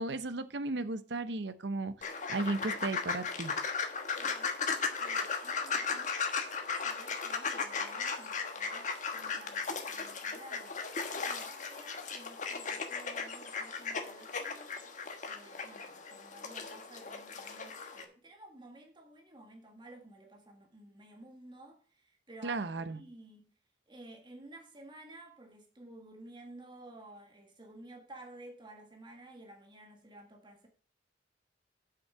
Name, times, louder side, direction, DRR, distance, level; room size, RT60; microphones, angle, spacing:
voice 1, 0.0-1.9 2.3-3.5 22.4-23.0, right 2 dB, 70° right, 0.8 m, -35 dB
sound 1, 2.0-18.0, left 5 dB, 45° left, 1.3 m, -36 dB
voice 2, 4.1-4.5 5.0-6.3 6.8-10.8 11.3-14.8 15.2-22.6 22.9-23.5 23.9-30.7, right 1 dB, 25° right, 1.6 m, -53 dB
8.3 x 6.4 x 5.7 m
head